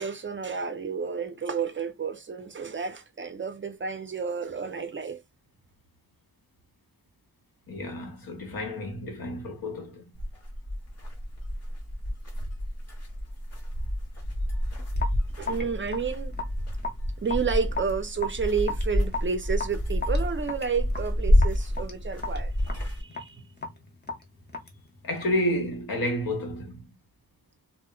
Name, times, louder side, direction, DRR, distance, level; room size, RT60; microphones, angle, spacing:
voice 1, 0.0-5.2 15.4-16.4 17.2-23.5, right 5 dB, 35° right, 0.4 m, -31 dB
voice 2, 7.7-10.1 25.0-26.9, left 1 dB, 80° left, 1.0 m, -30 dB
sound 1, 10.1-23.0, left 1 dB, 45° left, 1.0 m, -29 dB
Raindrop / Drip, 14.9-25.5, left 3 dB, 30° left, 0.7 m, -38 dB
2.1 x 2.1 x 3.6 m
wide cardioid pair, 105°, 35 cm